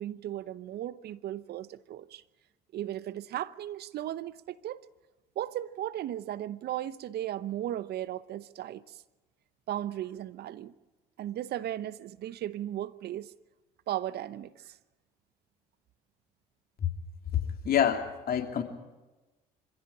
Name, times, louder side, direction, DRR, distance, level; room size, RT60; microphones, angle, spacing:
voice 1, 0.0-2.2 2.7-4.8 5.4-9.0 9.7-10.7 11.2-13.3 13.9-14.7, right 12 dB, 60° right, 0.8 m, -36 dB
voice 2, 17.3-18.6, left 9 dB, 50° left, 3.0 m, -27 dB
26.0 x 15.5 x 8.7 m
hypercardioid pair, 60°, 19 cm